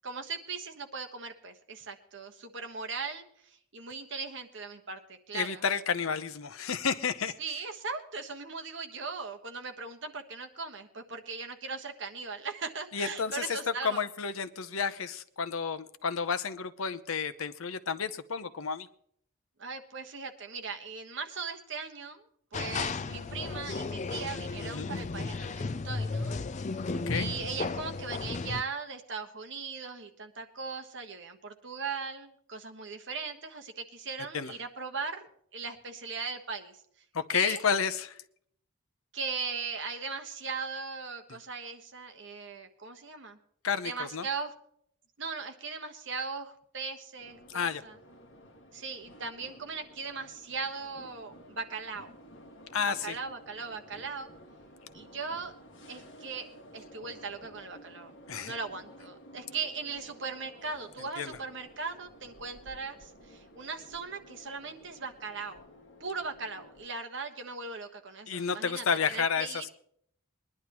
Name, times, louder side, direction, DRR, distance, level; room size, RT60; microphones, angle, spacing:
voice 1, 0.0-5.6 7.4-14.1 19.6-22.2 22.5-26.4 27.1-36.8 37.3-37.6 39.1-43.4 43.8-44.5 45.2-48.0 48.7-52.1 52.9-54.3 54.9-55.5 55.9-56.4 56.7-65.6 66.0-68.8 69.1-69.6, right 4 dB, 60° right, 5 dB, 1.3 m, -39 dB
voice 2, 5.3-7.4 12.9-18.9 24.6-24.9 27.1-27.3 34.3-34.5 37.1-38.2 43.6-44.3 47.5-47.8 52.7-53.2 58.3-58.5 61.2-61.4 68.3-69.7, left 6 dB, 85° left, 12 dB, 0.7 m, -31 dB
sound 1, 22.5-28.6, left 3 dB, 35° left, 0.4 m, -34 dB
sound 2, 47.2-66.9, equal, 60° left, 1.9 m, -53 dB
21.5 x 11.0 x 3.0 m, 0.67 s
head